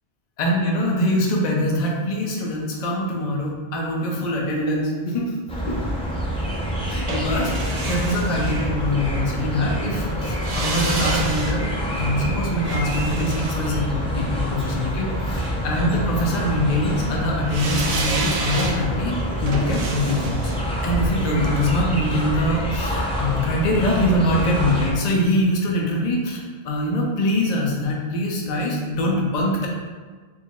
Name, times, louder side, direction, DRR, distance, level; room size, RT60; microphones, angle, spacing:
voice 1, 0.4-5.3 5.7-5.8 6.9-20.5 20.8-29.7, left 1 dB, 50° left, -1 dB, 0.7 m, -23 dB
sound 1, 5.5-24.9, equal, 10° left, 0.4 m, -26 dB
sound 2, 7.1-9.2 10.2-14.5 17.5-22.5 22.8-22.9, right 2 dB, 50° right, 0.5 m, -31 dB
4.4 x 2.0 x 3.5 m, 1.4 s
omnidirectional pair, 1.1 m